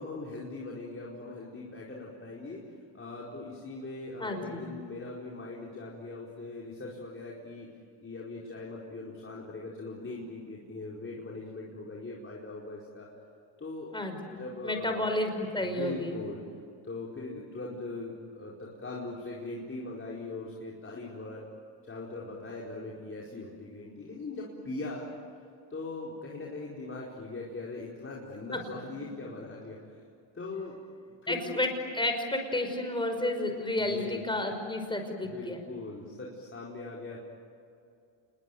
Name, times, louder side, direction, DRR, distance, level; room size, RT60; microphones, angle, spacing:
voice 1, 0.0-7.7 8.0-13.1 13.6-13.9 14.2-15.1 15.7-16.4 16.8-21.6 21.8-25.1 25.7-30.0 30.3-30.8 31.1-31.6 33.8-34.2 35.2-37.2, left 2 dB, 25° left, -4 dB, 4.8 m, -40 dB
voice 2, 4.2-4.6 13.9-16.1 31.3-31.7 31.9-35.6, left 1 dB, 10° left, 5 dB, 5.7 m, -31 dB
28.5 x 21.5 x 9.3 m, 2.5 s
cardioid pair, 110°, 47 cm